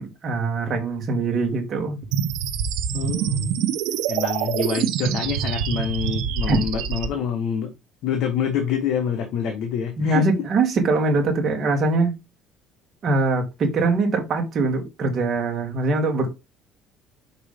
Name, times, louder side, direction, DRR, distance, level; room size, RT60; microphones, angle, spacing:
voice 1, 0.0-2.0 6.5-6.6 10.0-12.1 13.0-16.3, right 3 dB, 35° right, 1.9 m, -22 dB
sound 1, 2.1-7.1, right 8 dB, 80° right, 0.8 m, -25 dB
voice 2, 2.9-3.7 4.1-7.7 8.0-10.3, left 8 dB, 60° left, 1.1 m, -26 dB
5.4 x 3.8 x 5.1 m
cardioid pair, 170°, 0 cm